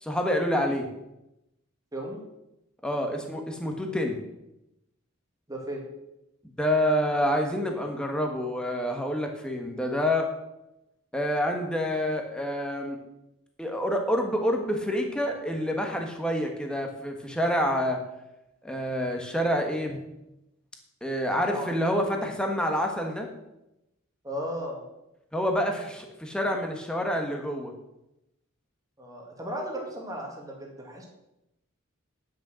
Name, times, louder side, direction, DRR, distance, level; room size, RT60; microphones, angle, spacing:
voice 1, 0.0-0.9 2.8-4.2 6.6-10.3 11.1-13.0 13.6-18.0 18.6-20.0 21.0-23.3 25.3-27.7, equal, 5° left, 3 dB, 1.4 m, -27 dB
voice 2, 5.5-5.8 21.5-21.7 24.2-24.8 29.0-31.0, equal, 15° right, 0 dB, 2.2 m, -35 dB
10.5 x 6.4 x 6.4 m, 0.89 s
head